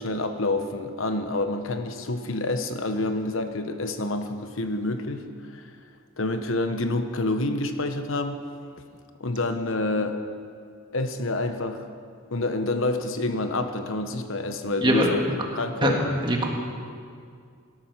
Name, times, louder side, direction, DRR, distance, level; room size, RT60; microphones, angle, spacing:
voice 1, 0.0-5.2 5.5-5.6 6.2-8.4 9.2-10.2 10.9-11.8 12.3-15.2 15.6-16.2, left 2 dB, 70° left, 8 dB, 1.1 m, -28 dB
voice 2, 14.8-15.1 15.8-16.0 16.2-16.6, right 1 dB, 20° right, 1 dB, 1.7 m, -22 dB
18.5 x 13.0 x 6.1 m, 2.2 s
head